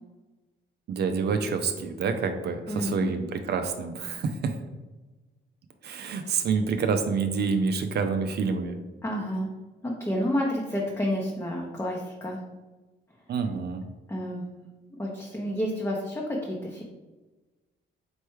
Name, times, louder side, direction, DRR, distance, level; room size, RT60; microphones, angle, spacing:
voice 1, 0.9-4.5 5.8-8.8 13.3-13.8, right 5 dB, 55° right, 7 dB, 0.4 m, -27 dB
voice 2, 2.7-3.1 6.2-6.4 9.0-9.5 9.8-12.4 14.1-14.4 15.0-16.8, equal, 15° left, -2 dB, 0.7 m, -30 dB
4.4 x 3.3 x 3.1 m, 1.2 s
cardioid pair, 90°, 20 cm